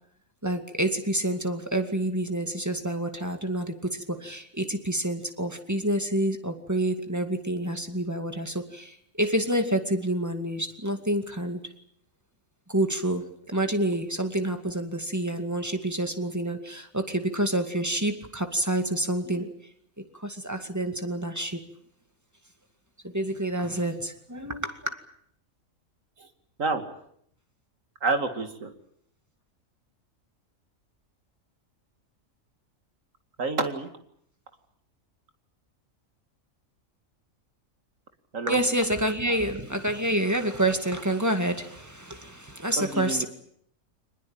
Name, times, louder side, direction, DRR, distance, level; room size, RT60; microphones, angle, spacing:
voice 1, 0.4-11.6 12.7-19.5 20.0-21.6 23.0-25.0 38.5-43.2, right 1 dB, 10° right, 6 dB, 2.2 m, -28 dB
voice 2, 28.0-28.7 33.4-33.9 38.3-38.6 42.8-43.3, right 3 dB, 70° right, 7 dB, 2.6 m, -28 dB
24.5 x 20.5 x 8.9 m, 0.69 s
omnidirectional pair, 1.4 m